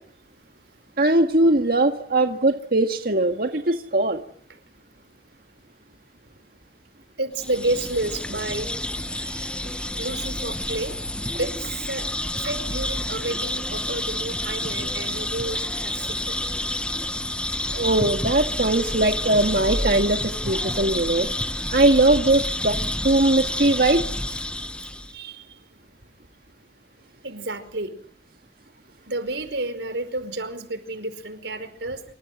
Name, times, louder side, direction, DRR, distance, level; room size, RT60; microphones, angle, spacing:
voice 1, 1.0-4.2 17.7-21.3 21.7-22.8 23.0-24.0, right 2 dB, 55° right, 5 dB, 1.8 m, -20 dB
voice 2, 7.2-8.7 9.0-11.0 11.4-12.1 12.4-16.4 21.2-21.4 24.3-24.4 25.1-25.6 27.2-27.9 29.1-32.0, right 2 dB, 90° right, 11 dB, 5.0 m, -31 dB
sound 1, 7.4-25.1, left 1 dB, 5° left, 1.2 m, -29 dB
27.5 x 25.5 x 8.0 m, 0.64 s
head